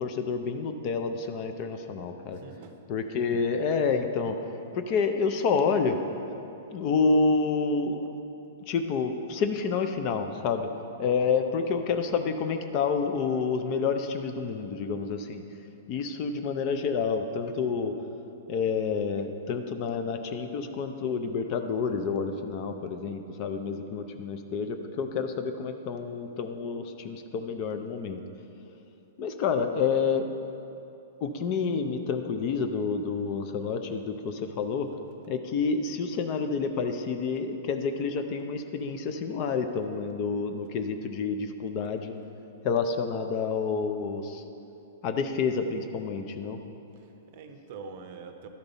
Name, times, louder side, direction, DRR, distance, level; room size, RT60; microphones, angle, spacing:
voice 1, 0.0-2.4 2.9-4.4 4.7-6.0 6.7-8.2 8.7-10.7 11.0-15.4 15.9-17.9 18.5-28.2 29.2-30.3 31.2-34.9 35.3-42.1 42.6-44.4 45.0-46.6, left 5 dB, 35° left, 7 dB, 0.5 m, -29 dB
voice 2, 2.3-2.8 46.9-48.5, right 5 dB, 45° right, 6 dB, 0.6 m, -45 dB
11.5 x 5.3 x 4.0 m, 2.8 s
hypercardioid pair, 160°, 0 cm